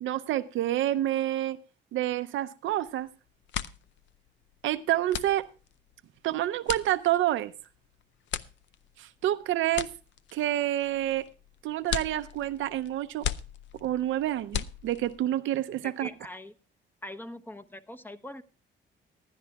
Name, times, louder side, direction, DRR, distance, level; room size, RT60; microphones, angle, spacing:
voice 1, 0.0-1.6 1.9-3.1 4.6-5.5 6.2-7.5 9.0-9.9 10.3-11.3 11.6-13.3 13.8-16.1, right 13 dB, 80° right, 0.6 m, -28 dB
sound 1, 2.8-3.1 3.3-15.3, left 10 dB, 70° left, 0.5 m, -38 dB
voice 2, 15.8-16.5 17.0-18.4, left 1 dB, 10° left, 0.9 m, -42 dB
18.5 x 11.5 x 2.3 m
cardioid pair, 90°, 20 cm